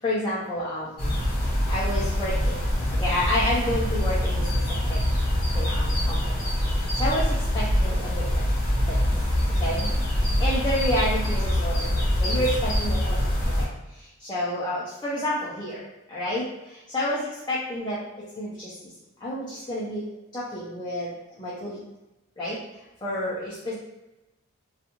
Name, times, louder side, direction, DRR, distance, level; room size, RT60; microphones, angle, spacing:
voice 1, 0.0-1.2 1.7-2.6 2.9-5.0 5.5-6.3 6.7-8.5 8.9-9.0 9.6-9.9 10.4-13.2 13.6-18.9 19.2-20.0 20.3-21.8 22.4-22.6 23.0-23.7, left 1 dB, 20° left, -8 dB, 0.4 m, -30 dB
sound 1, 1.0-13.6, left 1 dB, 40° left, 0.8 m, -24 dB
2.9 x 2.4 x 2.5 m, 0.98 s
head